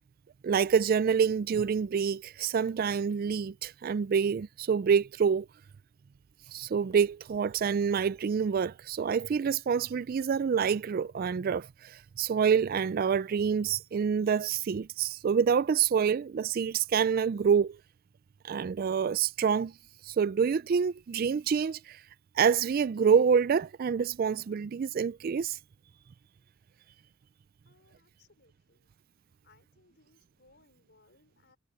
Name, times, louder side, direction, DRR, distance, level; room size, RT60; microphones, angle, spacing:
voice 1, 0.4-5.5 6.5-17.8 18.4-19.7 20.0-22.0 22.4-25.6, right 6 dB, 45° right, 0.3 m, -27 dB
voice 2, 27.7-28.9 29.4-31.6, left 3 dB, 50° left, 5.4 m, -65 dB
head